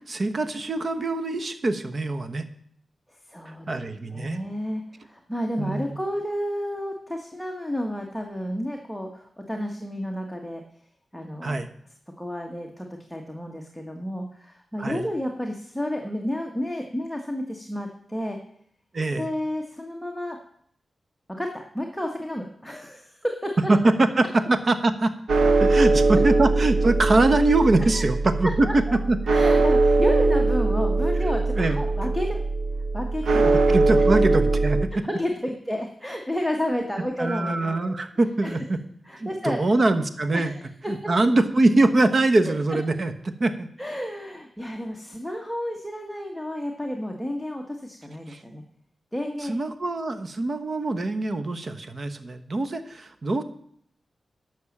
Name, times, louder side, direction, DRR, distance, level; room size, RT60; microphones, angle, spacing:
voice 1, 0.1-2.5 3.7-4.4 5.6-6.0 11.4-11.7 14.8-15.1 18.9-19.3 23.7-25.1 25.6-28.7 29.1-29.2 31.5-31.8 33.3-35.0 37.2-38.8 39.2-40.5 40.9-43.7 48.3-48.4 49.4-53.4, right 2 dB, 45° right, 9 dB, 1.1 m, -23 dB
voice 2, 3.3-3.8 4.1-10.6 11.1-11.6 12.2-18.4 19.2-20.4 21.3-23.6 25.7-25.9 27.8-28.0 28.4-29.0 29.3-32.4 32.9-33.5 35.0-38.0 38.4-38.6 39.0-39.6 40.3-41.1 43.8-48.6 49.1-49.5, equal, ahead, 1 dB, 1.4 m, -31 dB
sound 1, 25.3-34.8, right 3 dB, 80° right, 1.0 m, -21 dB
11.5 x 6.4 x 7.3 m, 0.66 s
cardioid pair, 80°, 0 cm